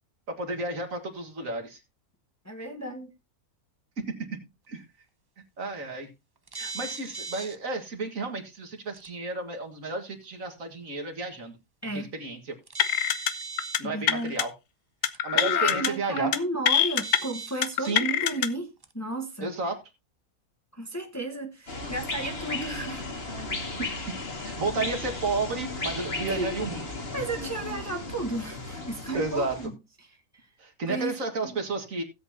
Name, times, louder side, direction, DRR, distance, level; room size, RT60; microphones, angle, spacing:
voice 1, 0.3-1.8 4.0-4.1 4.7-4.8 5.6-6.1 6.5-11.6 11.9-12.6 13.8-14.5 15.2-16.3 17.8-18.0 19.4-19.8 23.7-23.9 24.4-26.9 29.1-29.6 30.6-32.0, right 3 dB, 65° right, 2.2 m, -32 dB
voice 2, 2.4-3.1 11.8-12.1 13.8-14.3 15.3-18.7 18.9-19.5 20.7-23.0 26.3-26.6 27.1-30.5 30.9-31.2 31.4-31.6, right 2 dB, 10° left, 1.2 m, -33 dB
sound 1, 6.5-7.6 8.9-9.1 12.7-13.8 15.1-15.2 17.0-18.0 18.8-18.9, right 4 dB, 30° right, 0.4 m, -38 dB
sound 2, 12.8-13.3 13.6-13.8 14.1-14.4 15.0-15.9 16.2-16.4 16.7-17.2 17.6-18.5, left 10 dB, 65° left, 1.1 m, -24 dB
sound 3, 21.7-29.7, left 2 dB, 45° left, 2.2 m, -35 dB
16.5 x 8.0 x 2.8 m
omnidirectional pair, 1.5 m